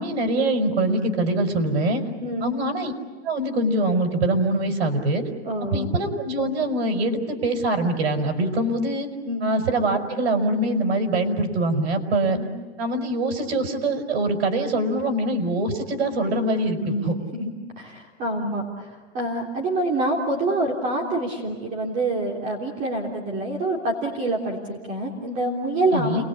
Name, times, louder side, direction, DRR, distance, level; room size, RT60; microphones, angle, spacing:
voice 1, 0.0-2.0 2.4-2.9 3.2-5.3 5.7-9.1 9.4-12.4 12.8-17.2 25.9-26.2, right 1 dB, 85° right, 5 dB, 5.2 m, -23 dB
voice 2, 2.2-2.5 5.4-5.9 9.2-9.4 12.3-12.5 16.8-17.5 17.8-26.3, right 1 dB, 25° right, 0 dB, 3.4 m, -26 dB
29.0 x 21.5 x 8.6 m, 1.4 s
supercardioid pair, 170°, 32 cm